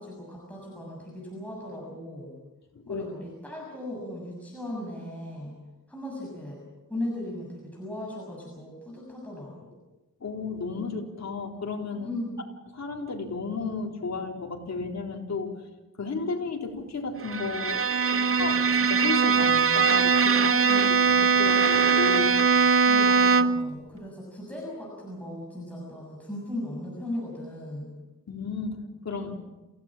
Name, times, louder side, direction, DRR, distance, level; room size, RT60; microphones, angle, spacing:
voice 1, 0.0-2.3 2.9-5.6 5.9-6.6 6.9-9.7 11.9-12.5 22.8-27.9, left 1 dB, 5° left, -3 dB, 6.9 m, -37 dB
voice 2, 2.7-3.0 10.2-12.1 12.7-15.7 16.0-17.8 18.1-22.4 28.3-29.4, left 4 dB, 50° left, 1 dB, 4.0 m, -33 dB
Bowed string instrument, 17.2-23.7, right 5 dB, 40° right, 0.8 m, -21 dB
28.0 x 16.5 x 7.5 m, 1.1 s
cardioid pair, 100°, 34 cm